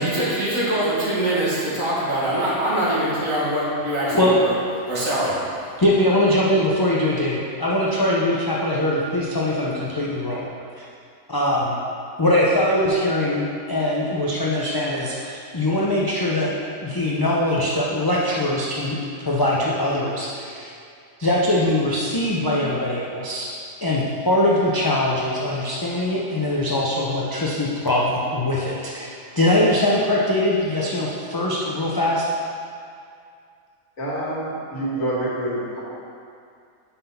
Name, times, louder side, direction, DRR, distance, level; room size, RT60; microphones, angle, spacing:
voice 1, 0.0-4.5 4.9-5.5, right 1 dB, 70° right, -8 dB, 2.2 m, -23 dB
voice 2, 5.8-10.5 10.8-10.9 11.3-11.8 12.2-16.5 16.8-19.0 19.2-20.7 21.2-23.5 23.8-32.3, left 1 dB, 30° left, -5 dB, 0.4 m, -22 dB
voice 3, 34.0-35.8, right 1 dB, 70° left, -6 dB, 2.0 m, -27 dB
5.6 x 5.5 x 5.7 m, 2.4 s
omnidirectional pair, 1.5 m